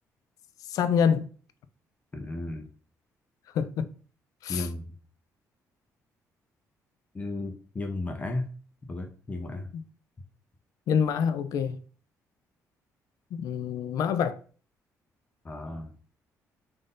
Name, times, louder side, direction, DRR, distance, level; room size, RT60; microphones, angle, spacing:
voice 1, 0.7-1.3 3.5-3.9 4.4-4.7 10.9-11.8 13.3-14.4, left 7 dB, 70° left, 0.4 m, -26 dB
voice 2, 2.1-2.7 4.5-4.9 7.1-8.5 8.9-9.7 15.4-15.9, left 2 dB, 25° left, 0.6 m, -34 dB
3.6 x 2.6 x 3.8 m
cardioid pair, 130°, 6 cm